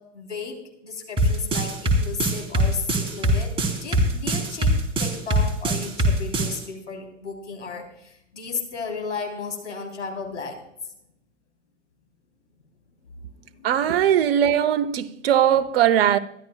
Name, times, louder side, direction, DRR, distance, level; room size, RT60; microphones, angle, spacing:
voice 1, 0.1-3.6 3.8-4.7 5.0-10.6 13.4-14.1, left 5 dB, 75° left, 3.7 m, -34 dB
sound 1, 1.2-6.5, right 1 dB, 15° right, 3.8 m, -21 dB
voice 2, 13.6-16.2, right 10 dB, 50° right, 0.9 m, -20 dB
22.5 x 12.5 x 2.3 m
figure-of-eight pair, 100°, 36 cm